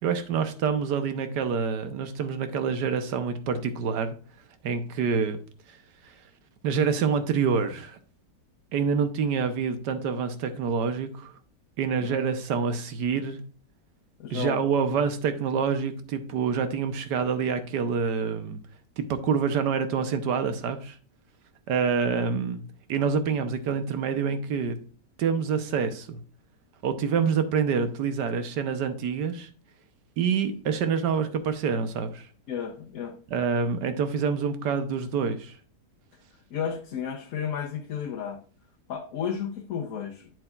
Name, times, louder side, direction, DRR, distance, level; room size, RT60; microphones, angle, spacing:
voice 1, 0.0-4.2 4.6-5.4 5.7-5.8 6.0-6.1 6.6-8.0 8.7-11.3 11.8-13.4 14.3-18.6 19.0-21.0 21.7-22.6 22.9-24.8 25.2-26.2 26.8-29.5 30.2-32.3 33.3-35.5, right 6 dB, 80° right, 1.5 m, -27 dB
voice 2, 14.2-14.6 32.5-33.2 36.5-38.4 38.9-40.3, left 7 dB, 60° left, 1.1 m, -32 dB
7.9 x 7.8 x 2.4 m
omnidirectional pair, 1.8 m